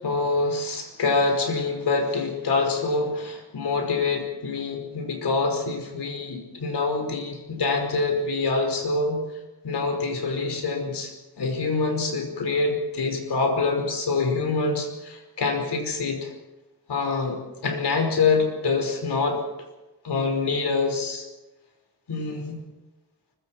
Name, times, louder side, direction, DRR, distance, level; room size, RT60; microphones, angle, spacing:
voice 1, 0.0-9.2 9.6-16.3 16.9-19.4 20.0-21.3 22.1-22.6, left 3 dB, 85° left, 4 dB, 5.3 m, -25 dB
24.5 x 23.0 x 4.6 m, 1.0 s
wide cardioid pair, 175°, 39 cm